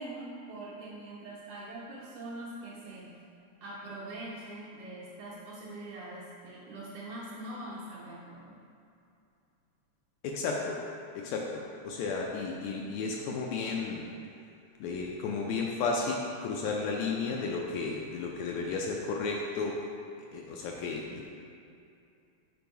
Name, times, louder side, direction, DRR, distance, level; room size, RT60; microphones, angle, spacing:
voice 1, 0.0-3.1 3.6-8.6, right 1 dB, 70° right, -6 dB, 1.6 m, -43 dB
voice 2, 10.2-10.8 11.1-14.1 14.8-19.8 20.3-21.3, left 4 dB, 80° left, -1 dB, 1.7 m, -33 dB
5.3 x 4.6 x 4.5 m, 2.6 s
omnidirectional pair, 3.4 m